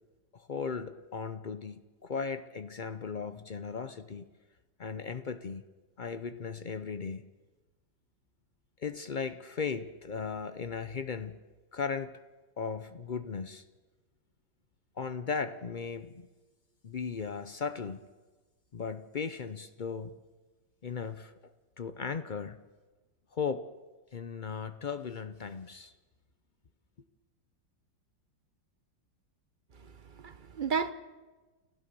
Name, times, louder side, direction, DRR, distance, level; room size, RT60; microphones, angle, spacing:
voice 1, 0.3-4.3 4.8-5.6 6.0-7.3 8.8-11.4 11.7-12.1 12.6-13.6 15.0-16.3 16.8-18.0 18.7-20.1 20.8-21.5 21.8-22.6 23.3-23.7 24.1-25.9, left 5 dB, 80° left, 0.4 m, -37 dB
voice 2, 29.8-30.9, right 6 dB, 40° right, 0.8 m, -33 dB
29.0 x 15.0 x 6.9 m
omnidirectional pair, 2.0 m